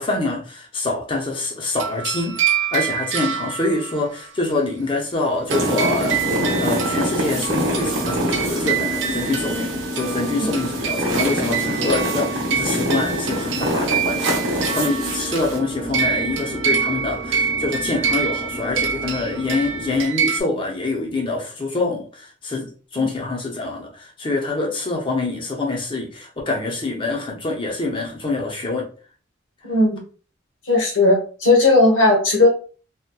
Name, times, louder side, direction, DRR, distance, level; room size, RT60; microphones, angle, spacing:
voice 1, 0.0-28.9, left 2 dB, 25° left, 1 dB, 0.5 m, -25 dB
sound 1, 1.8-4.2 5.5-20.4, right 7 dB, 65° right, 0.4 m, -26 dB
sound 2, 5.5-15.6, equal, 80° right, 0.8 m, -25 dB
sound 3, 5.6-20.0, equal, 25° right, 0.6 m, -32 dB
voice 2, 29.6-30.0 30.7-32.5, left 2 dB, 75° left, 0 dB, 0.9 m, -16 dB
2.6 x 2.1 x 2.2 m, 0.38 s
head